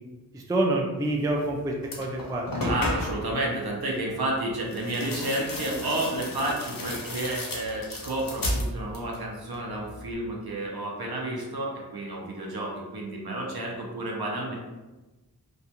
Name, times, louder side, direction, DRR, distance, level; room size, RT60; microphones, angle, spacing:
voice 1, 0.3-2.7, right 2 dB, 10° right, 0 dB, 0.3 m, -27 dB
sound 1, 1.4-1.5 1.8-3.3 4.7-9.2 9.5-10.1, left 1 dB, 55° left, 0.6 m, -33 dB
voice 2, 2.6-14.5, right 1 dB, 65° right, -2 dB, 0.6 m, -31 dB
2.4 x 2.1 x 2.8 m, 1.2 s
wide cardioid pair, 45°, 40 cm